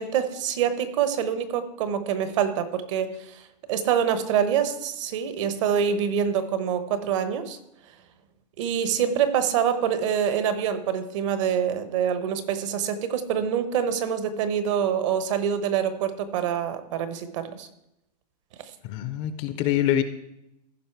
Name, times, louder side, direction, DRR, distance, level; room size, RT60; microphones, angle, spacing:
voice 1, 0.0-7.6 8.6-17.7, right 8 dB, 50° right, 11 dB, 1.1 m, -26 dB
voice 2, 18.8-20.0, left 11 dB, 25° left, 11 dB, 0.5 m, -25 dB
15.0 x 5.3 x 4.6 m, 0.86 s
hypercardioid pair, 155°, 21 cm